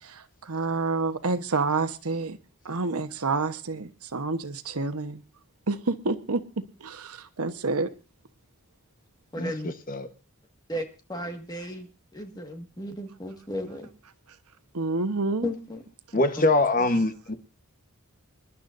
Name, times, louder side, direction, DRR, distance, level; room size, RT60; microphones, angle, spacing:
voice 1, 0.0-2.4 2.6-5.2 5.7-7.9 14.7-15.5 16.1-16.2, right 3 dB, 85° right, 1.1 m, -29 dB
voice 2, 9.3-9.7 10.7-13.9 15.4-15.8 16.4-16.5, equal, 15° left, 1.7 m, -35 dB
voice 3, 16.1-17.3, left 2 dB, 35° left, 1.1 m, -23 dB
26.5 x 11.5 x 2.6 m
head